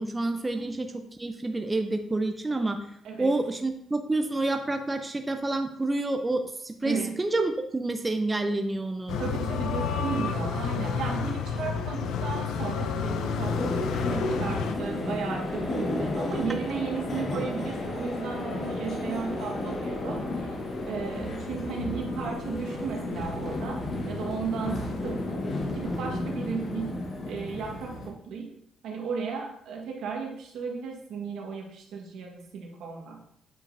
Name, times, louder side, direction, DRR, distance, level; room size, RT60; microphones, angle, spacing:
voice 1, 0.0-2.8 3.2-9.2, right 2 dB, 20° right, 6 dB, 0.5 m, -28 dB
voice 2, 6.8-7.2 9.2-13.7 14.1-25.4 25.7-27.0 27.3-28.5 28.8-33.2, right 5 dB, 80° right, 1 dB, 1.4 m, -35 dB
sound 1, 9.1-14.7, left 6 dB, 85° left, 0.6 m, -30 dB
sound 2, 13.4-28.1, left 2 dB, 50° left, 1.3 m, -32 dB
8.2 x 5.1 x 2.7 m, 0.71 s
cardioid pair, 90°, 0 cm